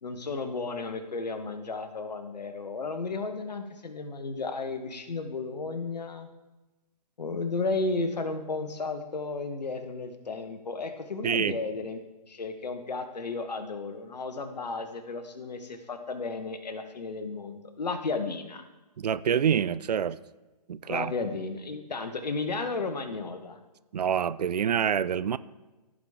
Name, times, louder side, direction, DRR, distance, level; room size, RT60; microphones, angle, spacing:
voice 1, 0.0-6.3 7.2-12.0 12.3-18.6 20.9-23.6, left 3 dB, 75° left, 8 dB, 1.2 m, -33 dB
voice 2, 11.2-11.5 19.0-20.2 20.7-21.1 23.9-25.4, right 8 dB, 70° right, 17 dB, 0.4 m, -26 dB
15.0 x 5.0 x 3.6 m, 1.1 s
figure-of-eight pair, 140°, 21 cm